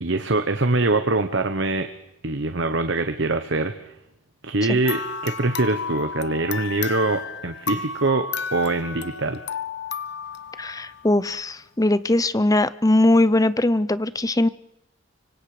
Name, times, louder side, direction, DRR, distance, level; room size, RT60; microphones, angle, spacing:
voice 1, 0.0-1.9 2.2-3.7 4.4-9.4, right 2 dB, 60° right, 9 dB, 1.2 m, -23 dB
sound 1, 4.8-11.3, left 5 dB, 55° left, 1.0 m, -32 dB
voice 2, 10.6-14.5, left 1 dB, 15° left, 16 dB, 0.7 m, -20 dB
25.0 x 25.0 x 5.1 m, 0.85 s
head